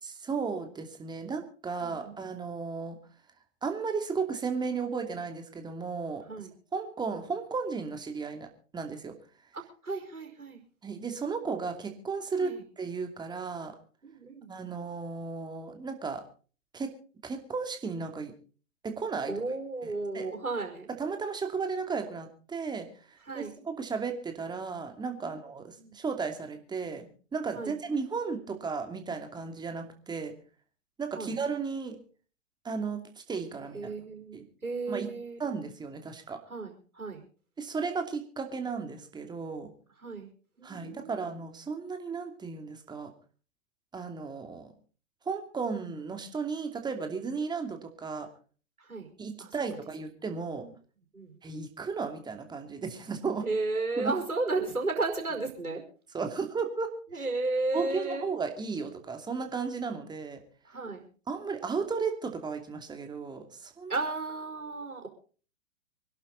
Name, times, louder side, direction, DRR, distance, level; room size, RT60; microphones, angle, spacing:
voice 1, 0.0-3.0 3.6-6.2 6.7-9.2 10.8-13.7 14.5-16.2 16.7-16.9 17.2-18.3 18.8-19.3 20.1-20.3 21.0-30.3 31.0-32.0 32.6-33.0 33.3-33.9 34.3-34.4 34.9-35.1 35.4-36.4 37.6-39.7 40.6-43.1 43.9-44.7 45.3-48.3 49.2-50.6 51.4-53.5 54.0-54.1 56.1-57.2 57.7-60.4 61.3-63.9, right 5 dB, 10° right, 5 dB, 2.6 m, -34 dB
voice 2, 1.8-2.1 6.3-6.5 9.5-10.6 12.4-12.6 14.0-14.5 19.3-20.9 23.2-23.5 25.2-25.4 25.8-26.0 27.5-27.8 31.1-31.3 33.7-35.4 36.5-37.2 40.0-40.3 40.6-41.2 48.8-49.1 49.4-49.5 50.6-50.7 51.1-51.3 53.4-55.8 57.1-58.2 60.6-61.0 63.9-65.1, right 3 dB, 85° right, 3 dB, 5.2 m, -34 dB
25.5 x 11.5 x 4.0 m, 0.40 s
figure-of-eight pair, 115°, 42 cm